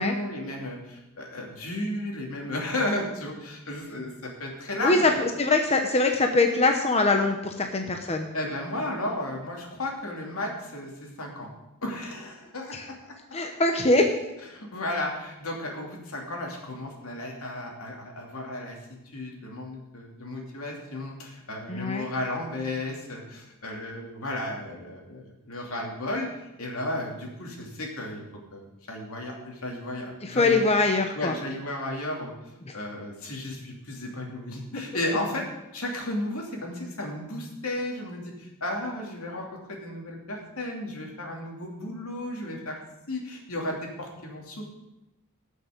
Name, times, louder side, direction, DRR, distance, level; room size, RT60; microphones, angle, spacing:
voice 1, 0.0-5.1 8.3-11.5 11.8-13.1 14.5-18.8 19.0-28.2 28.5-30.6 31.1-32.3 32.7-35.4 35.7-42.8 43.1-44.6, left 1 dB, 80° left, 0 dB, 2.8 m, -34 dB
voice 2, 4.8-8.3 12.7-12.9 13.3-14.2 21.7-22.1 30.2-31.3 32.7-32.8, left 2 dB, 30° left, 4 dB, 0.9 m, -23 dB
18.5 x 6.5 x 5.2 m, 0.94 s
head